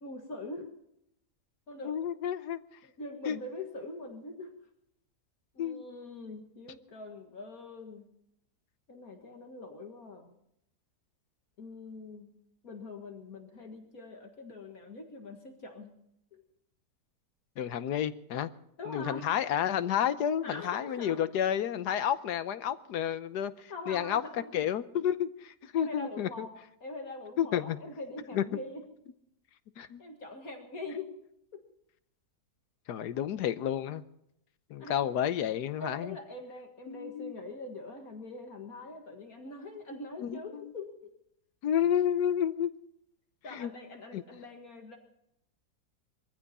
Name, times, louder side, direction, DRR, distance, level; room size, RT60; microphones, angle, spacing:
voice 1, 0.0-0.7 1.7-2.0 2.8-4.5 5.5-8.1 8.9-10.3 11.6-12.4 12.6-16.0 16.3-16.4 18.8-19.3 20.4-21.3 23.7-24.5 25.8-26.5 26.8-28.8 30.0-31.1 31.5-31.6 34.8-35.0 35.8-41.1 43.4-45.0, left 2 dB, 60° left, 3 dB, 2.2 m, -43 dB
voice 2, 1.8-2.6 3.3-3.4 5.6-5.8 17.6-18.5 18.9-24.2 24.5-26.5 27.4-27.8 28.3-28.4 29.8-30.0 32.9-34.0 34.7-36.2 36.9-37.3 40.2-40.4 41.6-42.7 43.5-43.7 44.1-44.2, left 9 dB, 90° left, 13 dB, 1.4 m, -30 dB
22.5 x 14.5 x 4.2 m, 0.75 s
omnidirectional pair, 1.7 m